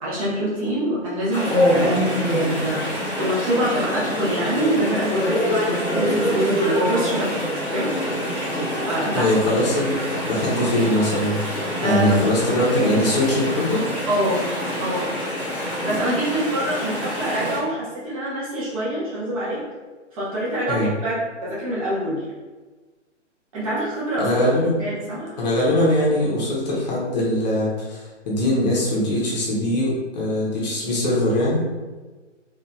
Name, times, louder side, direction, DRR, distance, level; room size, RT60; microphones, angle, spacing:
voice 1, 0.0-7.4 7.7-7.9 8.9-9.3 11.8-12.3 14.1-14.4 14.8-15.1 15.8-19.6 20.1-22.2 23.5-24.3 24.8-25.4, equal, 30° right, -8 dB, 1.1 m, -25 dB
Chatter / Stream, 1.3-17.6, equal, 5° left, 0.8 m, -25 dB
voice 2, 9.1-13.9 20.7-20.9 24.2-24.8 25.4-31.6, left 1 dB, 35° left, -6 dB, 1.0 m, -21 dB
4.2 x 2.6 x 2.4 m, 1.3 s
figure-of-eight pair, 145°, 37 cm